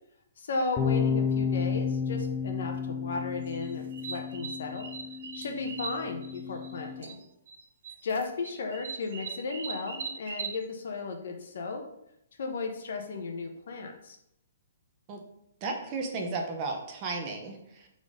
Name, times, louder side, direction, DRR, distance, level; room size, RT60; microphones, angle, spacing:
voice 1, 0.4-4.9 5.3-7.2 8.0-11.8 12.4-14.2, left 3 dB, 55° left, 3 dB, 1.1 m, -35 dB
sound 1, 0.8-7.0, left 6 dB, 15° left, 0.6 m, -32 dB
sound 2, 3.5-6.7 7.0-7.6 7.8-10.6, right 6 dB, 50° right, 1.1 m, -40 dB
voice 2, 15.6-17.9, right 3 dB, 25° right, 2 dB, 0.8 m, -34 dB
5.6 x 4.0 x 5.0 m, 0.78 s
hypercardioid pair, 175°, 0 cm